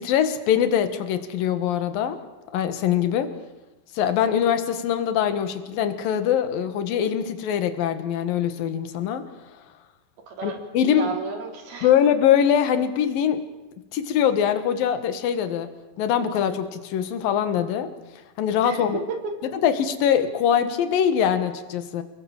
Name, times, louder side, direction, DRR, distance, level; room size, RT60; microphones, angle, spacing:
voice 1, 0.0-2.2 2.5-3.3 3.9-9.2 10.4-11.1 11.8-13.4 13.9-15.7 16.0-17.9 18.4-19.0 19.6-22.0, left 9 dB, 65° left, 9 dB, 3.3 m, -23 dB
voice 2, 10.3-10.6 10.9-11.9 18.6-19.3, right 4 dB, 75° right, 3 dB, 5.4 m, -32 dB
29.5 x 21.5 x 7.3 m, 1.1 s
omnidirectional pair, 4.5 m